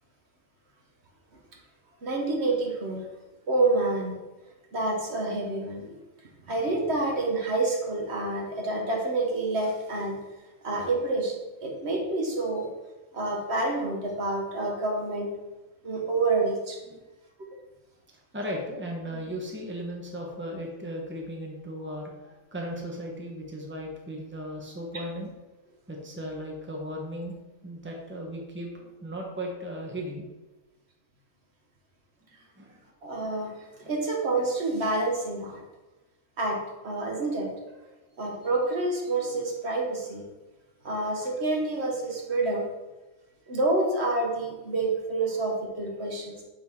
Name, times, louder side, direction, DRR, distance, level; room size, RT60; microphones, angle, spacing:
voice 1, 2.0-3.0 3.5-4.2 4.7-5.9 6.4-10.2 10.6-12.7 13.1-15.3 15.8-16.8 33.0-35.6 36.4-37.5 38.2-40.2 40.8-42.7 43.5-46.4, right 2 dB, 55° right, -1 dB, 1.3 m, -28 dB
voice 2, 18.3-25.3 25.9-27.3 27.6-30.2 32.6-32.8 33.8-33.9 40.9-41.1, equal, 10° right, 0 dB, 0.8 m, -36 dB
6.6 x 4.0 x 3.6 m, 1.1 s
omnidirectional pair, 1.4 m